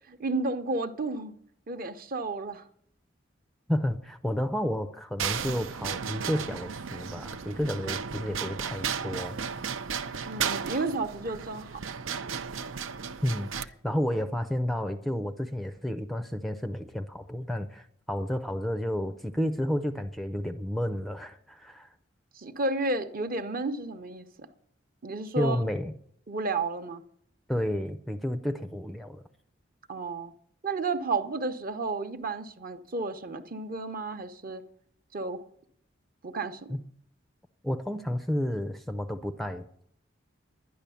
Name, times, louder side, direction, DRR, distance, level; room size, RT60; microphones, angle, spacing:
voice 1, 0.1-1.3 1.7-2.6 10.3-11.8 22.4-24.5 25.0-25.7 26.3-27.0 29.9-30.3 30.6-34.6 35.1-35.4 36.2-36.8, right 3 dB, 45° right, 0.8 m, -32 dB
voice 2, 3.7-9.4 13.2-21.9 25.4-25.9 27.5-29.2 36.7-36.8 37.6-39.8, equal, ahead, 0.4 m, -31 dB
sound 1, 5.2-13.7, right 7 dB, 90° right, 0.6 m, -34 dB
11.5 x 10.5 x 6.9 m
head